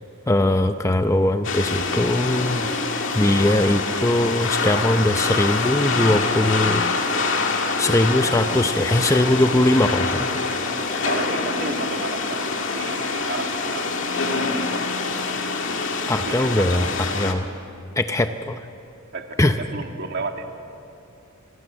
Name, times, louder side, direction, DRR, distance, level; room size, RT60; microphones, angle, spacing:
voice 1, 0.3-2.7 3.1-6.8 7.8-10.3 16.1-17.5 18.0-18.6 19.4-19.6, left 1 dB, 15° left, 8 dB, 0.6 m, -20 dB
sound 1, 1.4-17.3, left 3 dB, 55° left, 2.3 m, -25 dB
voice 2, 11.0-13.9 16.2-16.7 19.1-20.5, right 3 dB, 50° right, 3 dB, 2.2 m, -32 dB
29.5 x 23.5 x 7.6 m, 2.7 s
head